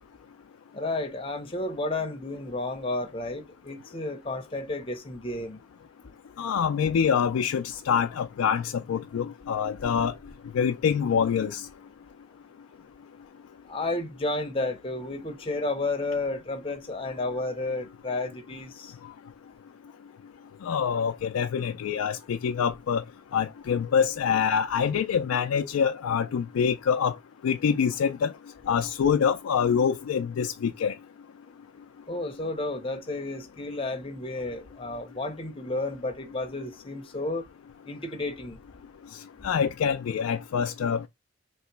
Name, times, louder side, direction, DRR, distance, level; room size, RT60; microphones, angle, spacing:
voice 1, 0.7-5.6 13.7-18.9 32.1-37.5 37.9-38.6, left 2 dB, 25° left, 0.7 m, -32 dB
voice 2, 6.4-10.1 10.5-11.7 20.6-23.0 23.3-27.1 27.4-28.3 28.7-30.9 39.4-41.1, left 7 dB, 80° left, 0.3 m, -25 dB
3.1 x 2.9 x 4.5 m
head